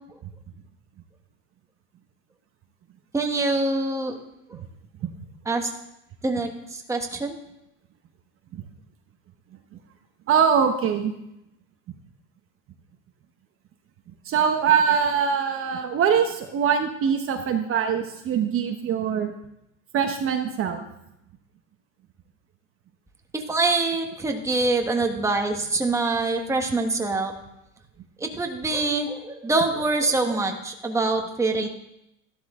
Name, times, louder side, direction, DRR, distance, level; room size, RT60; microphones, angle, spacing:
voice 1, 3.1-4.2 5.4-5.7 6.2-7.4 23.3-27.3 28.2-31.7, right 3 dB, 5° right, 3 dB, 1.4 m, -25 dB
voice 2, 10.3-11.1 14.2-19.3 19.9-20.8, right 7 dB, 35° right, 5 dB, 1.2 m, -23 dB
14.0 x 12.0 x 3.8 m, 0.83 s
supercardioid pair, 130°, 40 cm